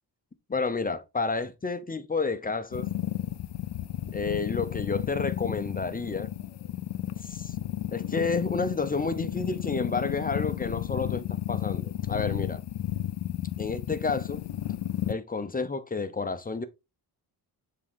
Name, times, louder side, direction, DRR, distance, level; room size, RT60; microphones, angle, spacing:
voice 1, 0.5-2.9 4.1-6.3 7.2-7.5 7.9-12.6 13.6-14.4 15.1-16.7, left 4 dB, 20° left, 0.8 m, -30 dB
sound 1, 2.7-15.1, left 12 dB, 80° left, 0.6 m, -33 dB
7.4 x 3.8 x 3.6 m
wide cardioid pair, 115°, 41 cm